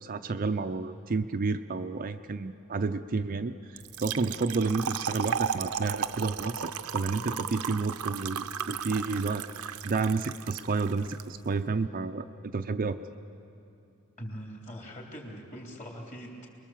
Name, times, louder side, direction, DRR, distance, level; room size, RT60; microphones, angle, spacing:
voice 1, 0.0-12.2 12.5-13.0, right 4 dB, 40° right, 8 dB, 0.5 m, -31 dB
Trickle dribble / Fill (with liquid), 3.8-11.2, right 7 dB, 75° right, 0.7 m, -35 dB
voice 2, 14.2-16.5, equal, 35° left, -1 dB, 3.4 m, -42 dB
28.0 x 21.5 x 7.4 m, 2.7 s
head